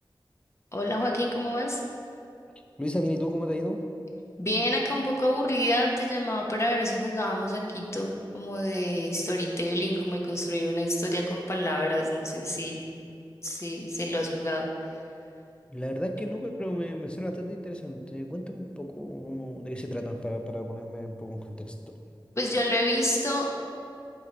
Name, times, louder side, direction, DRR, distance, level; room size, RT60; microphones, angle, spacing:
voice 1, 0.7-1.8 4.4-12.8 13.4-14.7 22.4-23.5, equal, 30° left, -1 dB, 1.0 m, -28 dB
voice 2, 2.8-3.8 15.7-21.7, equal, 10° left, 4 dB, 0.6 m, -33 dB
8.4 x 3.3 x 5.2 m, 2.5 s
wide cardioid pair, 50°, 9 cm